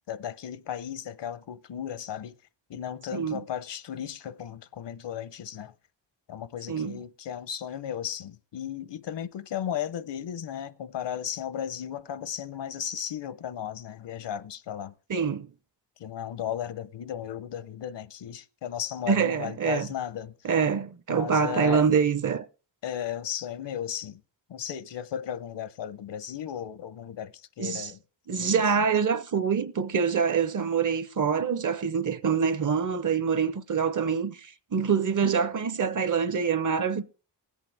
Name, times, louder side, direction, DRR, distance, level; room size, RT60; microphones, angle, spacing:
voice 1, 0.1-2.4 2.7-5.7 6.3-14.9 16.0-20.5 21.1-21.8 22.8-24.2 24.5-28.0 28.4-28.9, left 9 dB, 80° left, 0.8 m, -35 dB
voice 2, 6.7-7.0 15.1-15.5 19.1-19.9 20.4-22.5 27.6-27.9 28.3-37.0, right 6 dB, 45° right, 0.7 m, -25 dB
19.5 x 8.2 x 3.4 m
wide cardioid pair, 120°, 43 cm